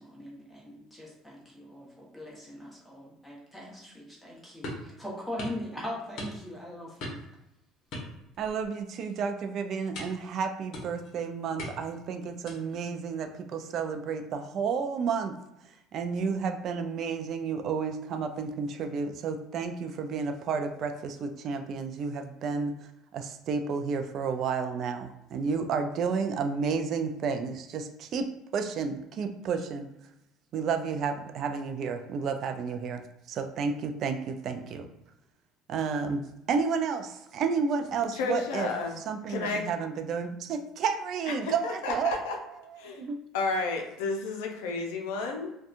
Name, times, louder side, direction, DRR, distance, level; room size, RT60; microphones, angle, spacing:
voice 1, 0.0-7.2, left 1 dB, 5° left, -4 dB, 1.0 m, -41 dB
sound 1, 4.6-4.9 5.4-5.6 6.2-6.6 7.0-7.3 7.9-8.7 9.0-9.2 9.9-10.3 10.7-11.1 11.6-12.0 12.5-12.8, left 1 dB, 60° left, 0.8 m, -40 dB
voice 2, 8.4-15.3 15.9-22.7 23.1-28.3 28.5-29.9 30.5-33.0 33.3-34.9 35.7-36.2 36.5-38.7 39.1-42.2 42.8-43.2, right 5 dB, 55° right, 7 dB, 0.3 m, -31 dB
voice 3, 38.1-39.0 39.3-39.7 41.3-42.4 42.8-43.0 43.3-45.5, left 3 dB, 90° left, 2 dB, 0.5 m, -31 dB
2.7 x 2.2 x 2.5 m, 0.86 s
supercardioid pair, 100°, 0 cm